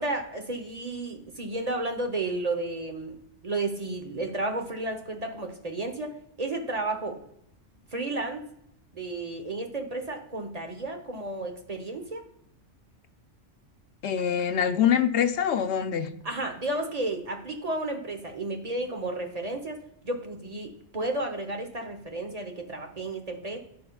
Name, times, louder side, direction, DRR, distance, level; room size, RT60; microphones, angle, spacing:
voice 1, 0.0-3.2 3.4-7.2 7.9-8.4 8.9-12.2 16.2-19.8 20.0-23.6, right 2 dB, 35° right, 4 dB, 0.9 m, -32 dB
voice 2, 14.0-16.1, left 8 dB, 70° left, 9 dB, 0.9 m, -24 dB
15.0 x 5.7 x 2.3 m, 0.76 s
omnidirectional pair, 1.2 m